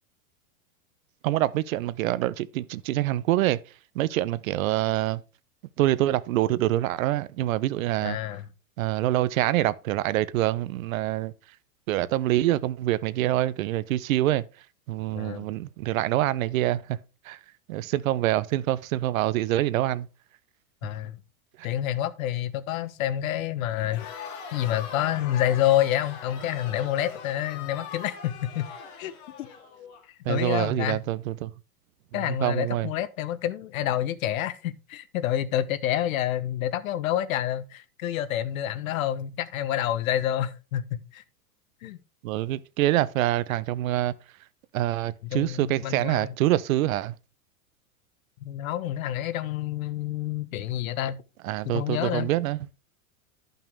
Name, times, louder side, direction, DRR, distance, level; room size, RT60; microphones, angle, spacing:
voice 1, 1.2-3.6 3.9-5.2 5.8-8.2 8.8-11.3 11.9-14.4 14.9-17.0 17.2-17.4 17.7-20.1 30.2-31.5 32.3-32.9 42.2-44.1 44.7-47.1 51.4-52.6, right 15 dB, 75° right, 0.8 m, -25 dB
voice 2, 8.0-8.5 15.1-15.5 20.8-21.2 21.6-24.1 24.5-28.7 29.0-29.1 29.4-29.5 30.3-31.0 32.1-41.2 41.8-42.0 45.2-46.3 48.4-51.2 51.6-52.3, left 12 dB, 75° left, 1.1 m, -28 dB
Crowd, 23.8-30.0, left 6 dB, 45° left, 2.4 m, -41 dB
12.5 x 5.7 x 3.5 m
supercardioid pair, 130°, 41 cm